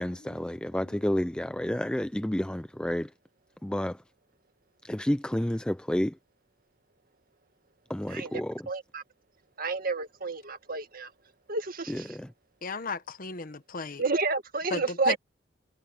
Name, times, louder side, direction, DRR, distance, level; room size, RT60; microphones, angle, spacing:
voice 1, 0.0-3.1 3.6-4.0 4.8-6.1 7.9-8.6 11.9-12.3, left 1 dB, 5° left, 0.4 m, -30 dB
voice 2, 8.1-8.4 8.7-9.0 9.6-11.1 11.5-12.2 14.0-15.2, right 3 dB, 50° right, 2.1 m, -30 dB
voice 3, 12.6-14.0 14.7-15.2, left 3 dB, 50° left, 1.3 m, -35 dB
head